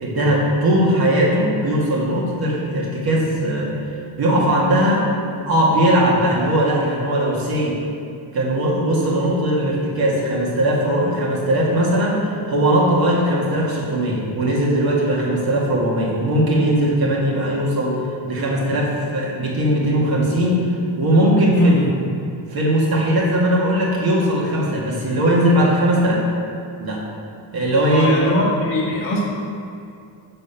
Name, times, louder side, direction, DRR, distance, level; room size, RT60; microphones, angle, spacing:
voice 1, 0.0-3.7 4.2-5.1 5.5-7.8 8.3-18.0 18.3-21.8 22.5-26.3 26.8-27.0 27.5-28.4, right 1 dB, 50° right, -3 dB, 1.9 m, -19 dB
voice 2, 21.5-21.9 27.9-29.2, left 1 dB, 40° left, -9 dB, 2.0 m, -21 dB
7.0 x 6.9 x 5.6 m, 2.4 s
cardioid pair, 160°, 49 cm